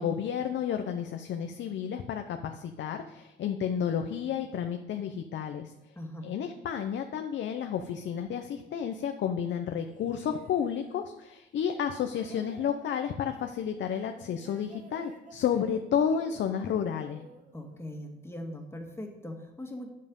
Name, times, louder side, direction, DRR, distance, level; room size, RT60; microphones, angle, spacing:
voice 1, 0.0-5.7 6.2-17.2, left 8 dB, 65° left, 6 dB, 0.8 m, -31 dB
voice 2, 6.0-6.3 17.5-19.9, left 1 dB, 10° left, 2 dB, 1.9 m, -40 dB
sound 1, 9.9-18.3 19.3-19.4, right 3 dB, 40° right, 1.6 m, -54 dB
9.5 x 7.5 x 5.3 m, 0.93 s
cardioid pair, 90°, 20 cm